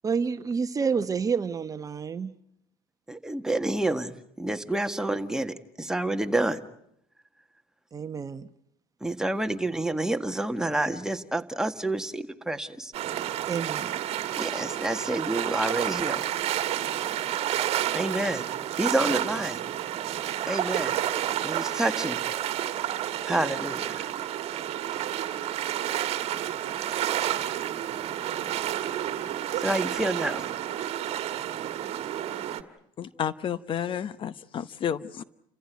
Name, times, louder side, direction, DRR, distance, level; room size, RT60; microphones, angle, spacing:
voice 1, 0.0-2.3 7.9-8.5 13.5-14.0, right 5 dB, 25° right, 1.0 m, -29 dB
voice 2, 3.1-6.6 9.0-12.9 14.4-16.2 17.9-18.4 18.8-19.6 20.5-21.0 21.4-22.2 23.2-24.1 29.6-30.5, right 1 dB, 5° right, 1.6 m, -28 dB
sound 1, 12.9-32.6, right 11 dB, 55° right, 1.6 m, -30 dB
voice 3, 33.0-35.2, left 9 dB, 45° left, 1.0 m, -31 dB
29.5 x 15.0 x 9.4 m
supercardioid pair, 105°, 13 cm